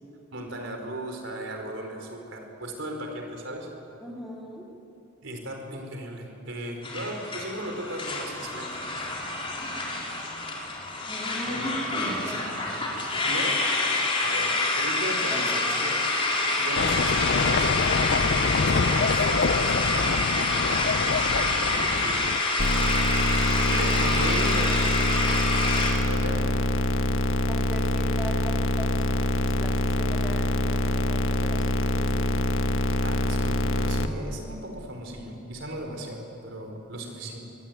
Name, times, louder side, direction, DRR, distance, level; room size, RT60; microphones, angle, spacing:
voice 1, 0.3-3.7 5.2-8.8 11.5-11.7 12.2-12.6 13.3-13.6 14.2-16.0 16.5-20.3 21.6-22.2 23.6-24.7 26.0-26.4 33.0-37.4, right 1 dB, 60° right, 3 dB, 4.3 m, -36 dB
voice 2, 4.0-4.7 11.1-12.6 15.2-15.9 21.0-22.1 24.0-24.5 27.5-32.3, equal, ahead, -3 dB, 3.5 m, -41 dB
sound 1, 6.8-25.9, left 2 dB, 25° left, 4.0 m, -27 dB
sound 2, 16.8-22.4, left 4 dB, 50° left, 0.5 m, -26 dB
sound 3, 22.6-34.1, left 1 dB, 70° left, 1.4 m, -25 dB
24.0 x 23.0 x 9.3 m, 2.9 s
head